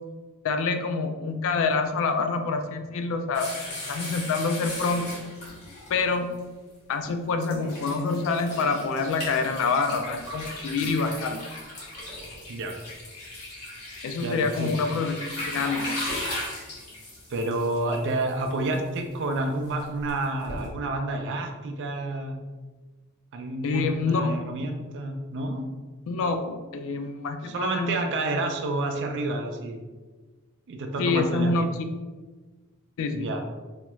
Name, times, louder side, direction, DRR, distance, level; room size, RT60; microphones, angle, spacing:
voice 1, 0.4-5.1 5.9-6.3 6.9-11.4 14.0-16.0 23.6-24.3 26.1-28.0 31.0-31.7 33.0-33.3, left 4 dB, 60° left, 7 dB, 0.3 m, -26 dB
sound 1, 3.3-6.4 7.0-7.1 7.4-20.7, left 1 dB, 85° left, 1.3 m, -37 dB
voice 2, 14.2-14.8 17.3-22.4 23.3-25.7 27.4-29.8 30.7-31.5 33.1-33.4, right 2 dB, 55° right, 4 dB, 0.4 m, -29 dB
2.8 x 2.3 x 3.0 m, 1.3 s
head